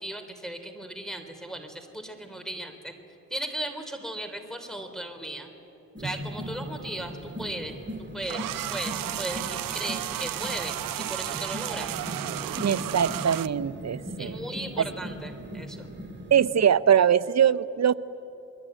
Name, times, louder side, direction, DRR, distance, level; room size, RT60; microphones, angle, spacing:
voice 1, 0.0-2.9 3.3-5.5 6.0-7.1 7.4-7.7 8.1-8.4 8.7-11.9 14.2-15.9, right 1 dB, ahead, 4 dB, 3.3 m, -36 dB
sound 1, 5.9-16.4, right 1 dB, 35° right, 5.1 m, -38 dB
sound 2, 8.2-13.5, right 13 dB, 85° right, 0.6 m, -33 dB
voice 2, 12.6-14.4 14.8-14.9 16.3-17.9, right 8 dB, 55° right, 15 dB, 0.8 m, -22 dB
27.5 x 22.0 x 9.1 m, 2.9 s
cardioid pair, 65°, 33 cm